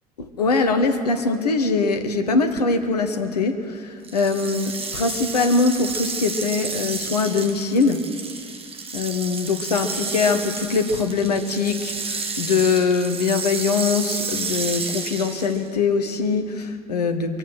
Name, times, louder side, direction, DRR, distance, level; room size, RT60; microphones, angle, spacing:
voice 1, 0.2-8.1 8.9-17.4, left 4 dB, 75° left, 7 dB, 1.1 m, -22 dB
sound 1, 4.0-15.7, right 4 dB, 30° right, 1.7 m, -31 dB
24.5 x 8.5 x 6.2 m, 2.3 s
figure-of-eight pair, 55°, 20 cm